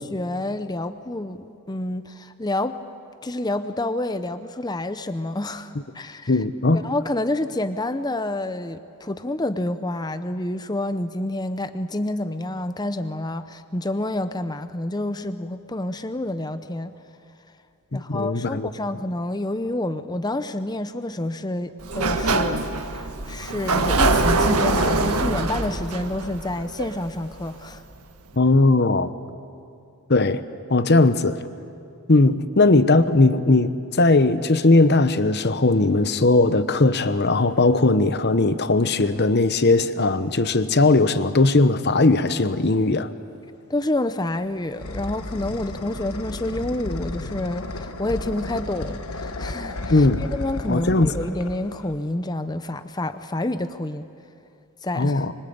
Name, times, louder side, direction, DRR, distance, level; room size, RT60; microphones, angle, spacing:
voice 1, 0.1-2.8 3.2-6.3 6.7-16.9 17.9-27.8 43.7-54.0 54.8-55.3, left 1 dB, 20° left, 0.7 m, -28 dB
voice 2, 6.3-6.8 17.9-18.7 28.4-29.1 30.1-30.4 30.7-31.4 32.1-43.1 49.9-50.2 50.7-51.1 54.9-55.3, left 2 dB, 50° left, 1.0 m, -18 dB
Sliding door, 21.8-27.5, right 2 dB, 80° right, 1.6 m, -23 dB
sound 1, 44.2-52.1, left 2 dB, 75° left, 1.4 m, -33 dB
25.5 x 24.0 x 8.7 m
head